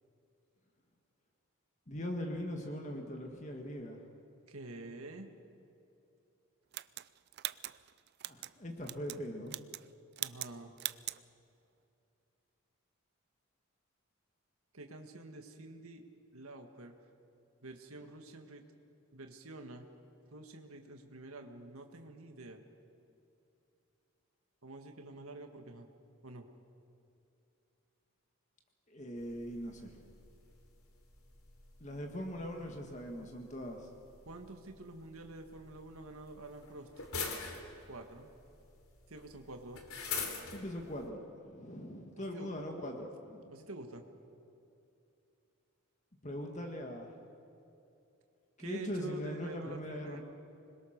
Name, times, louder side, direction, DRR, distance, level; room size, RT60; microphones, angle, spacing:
voice 1, 1.9-4.0 8.2-9.6 28.9-30.0 31.8-33.9 40.5-43.5 46.2-47.1 48.6-50.2, equal, 35° left, 2 dB, 1.8 m, -41 dB
voice 2, 4.5-5.3 10.2-10.7 14.7-16.0 16.3-16.9 17.6-18.6 19.1-19.9 20.3-22.6 24.6-25.9 26.2-26.5 34.3-36.9 37.9-38.3 39.1-39.8 42.2-42.5 43.5-44.0 48.6-50.2, right 2 dB, 85° right, 4 dB, 1.8 m, -48 dB
sound 1, 6.7-8.5 8.8-9.2 9.5-9.9 10.2-10.5 10.8-11.2, right 15 dB, 50° right, 0.5 m, -40 dB
sound 2, 29.2-41.1, left 5 dB, 85° left, 3.3 m, -46 dB
26.0 x 21.5 x 6.6 m, 2.7 s
head